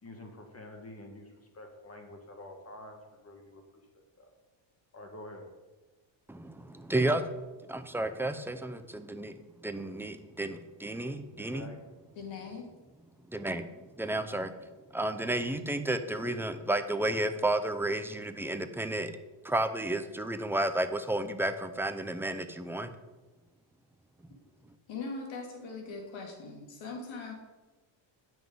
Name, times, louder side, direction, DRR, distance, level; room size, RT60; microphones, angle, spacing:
voice 1, 0.0-3.0 3.2-3.8 4.2-4.3 4.9-5.5 11.2-11.8, left 1 dB, 30° left, 3 dB, 1.5 m, -48 dB
voice 2, 6.3-7.2 7.7-9.4 9.6-11.7 13.3-13.7 14.0-14.5 14.9-19.1 19.4-22.9, right 1 dB, 5° right, 8 dB, 0.5 m, -32 dB
voice 3, 12.2-12.7 24.3-24.4 24.9-27.3, left 4 dB, 70° left, 1 dB, 2.5 m, -40 dB
9.2 x 6.2 x 5.3 m, 1.2 s
cardioid pair, 115°, 48 cm